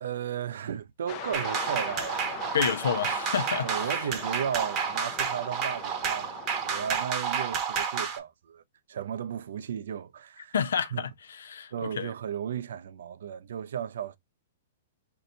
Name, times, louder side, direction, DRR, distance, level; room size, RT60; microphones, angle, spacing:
voice 1, 0.0-2.6 3.6-8.6 8.9-10.5 10.9-11.0 11.7-14.2, right 8 dB, 75° right, 0.4 m, -35 dB
sound 1, 1.1-7.1, left 8 dB, 30° left, 0.5 m, -41 dB
sound 2, 1.3-8.2, right 7 dB, 25° right, 0.8 m, -31 dB
voice 2, 2.5-3.9 10.5-12.1, left 7 dB, 90° left, 0.5 m, -29 dB
4.4 x 2.6 x 2.6 m
hypercardioid pair, 155°, 0 cm